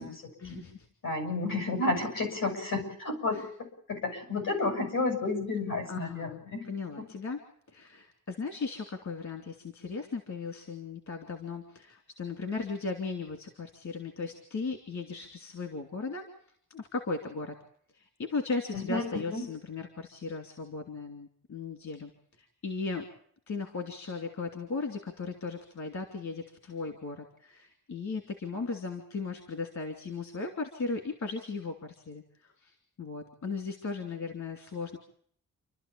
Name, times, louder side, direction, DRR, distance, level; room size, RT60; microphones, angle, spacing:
voice 1, 0.0-0.9 3.3-3.5 5.9-7.4 7.7-16.3 16.7-17.6 17.9-22.1 22.4-23.0 23.5-35.0, left 4 dB, 60° left, 5 dB, 2.9 m, -37 dB
voice 2, 1.0-3.4 3.9-6.6 18.7-19.0 19.3-19.4, left 2 dB, 80° left, 5 dB, 8.0 m, -31 dB
29.5 x 13.0 x 8.6 m, 0.63 s
wide cardioid pair, 165°, 33 cm